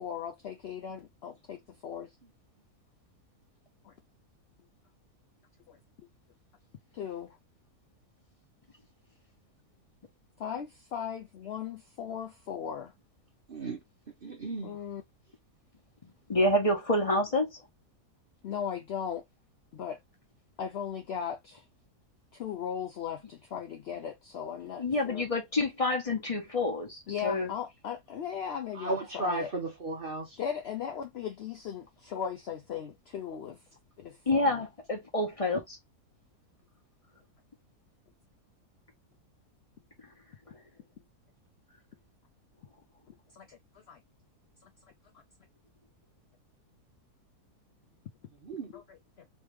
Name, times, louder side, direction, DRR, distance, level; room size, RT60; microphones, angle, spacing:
voice 1, 0.0-2.1 3.8-3.9 5.7-5.8 6.9-7.4 10.4-12.9 14.6-15.0 18.4-19.2 19.7-20.0 20.6-21.6 22.3-25.3 27.1-29.5 30.4-33.6 34.0-34.7 43.3-43.6 43.9-44.0 44.6-44.7 48.7-49.0, left 8 dB, 75° left, 0.5 m, -37 dB
voice 2, 13.5-13.8 14.2-14.8 28.7-30.4 48.4-48.7, right 2 dB, 45° right, 0.7 m, -34 dB
voice 3, 16.3-17.6 24.8-27.5 34.3-35.8, left 1 dB, 25° left, 1.1 m, -28 dB
3.2 x 3.2 x 3.2 m
omnidirectional pair, 1.7 m